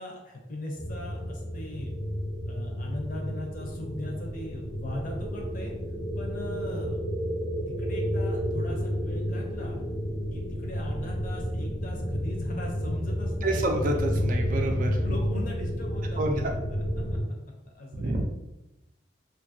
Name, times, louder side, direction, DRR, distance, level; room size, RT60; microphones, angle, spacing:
voice 1, 0.0-1.9 2.5-5.7 6.2-7.0 7.7-9.7 10.3-14.3 15.0-16.8 17.7-18.2, left 1 dB, 45° left, 0 dB, 0.6 m, -39 dB
sound 1, 0.8-17.2, equal, 85° left, 1.1 m, -31 dB
voice 2, 13.4-15.1 16.2-16.5 17.9-18.2, right 1 dB, 45° right, 3 dB, 0.4 m, -28 dB
2.7 x 2.5 x 2.6 m, 0.93 s
head